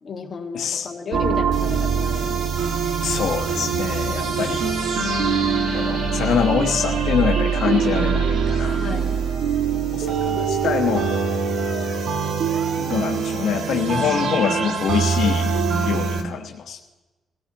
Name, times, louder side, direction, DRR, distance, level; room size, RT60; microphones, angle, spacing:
voice 1, 0.0-2.4 4.1-4.6 7.6-7.9 8.8-9.2 15.2-15.3, left 5 dB, 40° left, 1 dB, 1.8 m, -33 dB
voice 2, 0.5-0.9 3.0-4.7 5.7-9.0 9.9-11.1 12.7-15.5 15.8-16.8, left 7 dB, 75° left, 2 dB, 1.2 m, -25 dB
sound 1, 1.1-16.2, right 5 dB, 80° right, 1.8 m, -23 dB
22.5 x 15.5 x 2.9 m, 1.1 s
cardioid pair, 125°, 0 cm